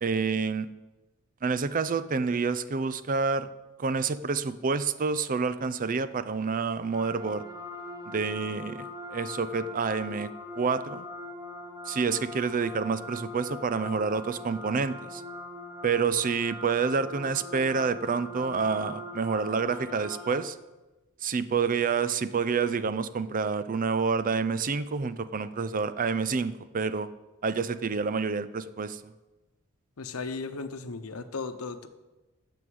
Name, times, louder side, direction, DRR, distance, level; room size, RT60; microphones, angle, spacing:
voice 1, 0.0-0.7 1.4-3.5 3.8-7.4 8.1-10.3 10.6-11.1 11.9-15.2 15.8-20.6 21.2-27.1 27.4-29.0, right 5 dB, 40° right, 14 dB, 0.5 m, -28 dB
sound 1, 6.9-20.4, left 1 dB, 20° right, 1.8 m, -41 dB
voice 2, 30.0-31.9, left 4 dB, 90° left, 10 dB, 0.9 m, -36 dB
9.5 x 6.9 x 7.8 m, 1.1 s
head